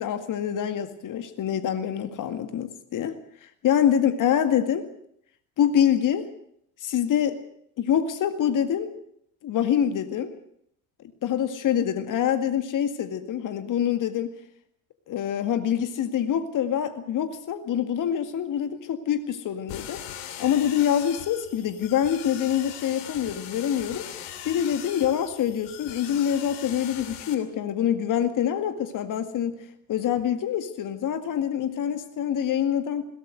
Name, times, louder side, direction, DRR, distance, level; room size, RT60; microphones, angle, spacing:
voice 1, 0.0-3.1 3.4-4.9 5.6-6.3 6.8-7.3 7.8-8.9 9.4-10.3 11.2-14.3 15.1-20.0 20.4-24.1 24.5-29.6 29.9-33.0, left 9 dB, 50° left, 10 dB, 2.0 m, -25 dB
sound 1, 19.7-27.3, left 10 dB, 70° left, 3.0 m, -40 dB
21.0 x 17.5 x 7.8 m, 0.69 s
hypercardioid pair, 65°, 42 cm